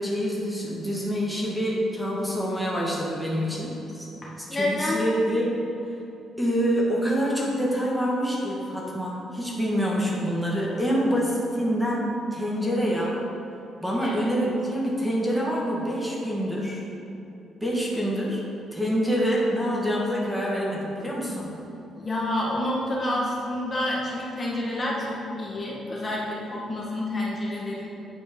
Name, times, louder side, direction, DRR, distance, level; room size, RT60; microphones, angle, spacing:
voice 1, 0.0-4.1 4.5-5.6 6.4-13.2 13.8-16.9 17.6-18.4 18.7-21.5, equal, 5° right, -5 dB, 1.7 m, -26 dB
voice 2, 4.2-5.0 13.9-14.3 21.9-27.9, left 1 dB, 35° left, -4 dB, 1.6 m, -29 dB
8.7 x 4.3 x 5.4 m, 2.9 s
cardioid pair, 90°, 0 cm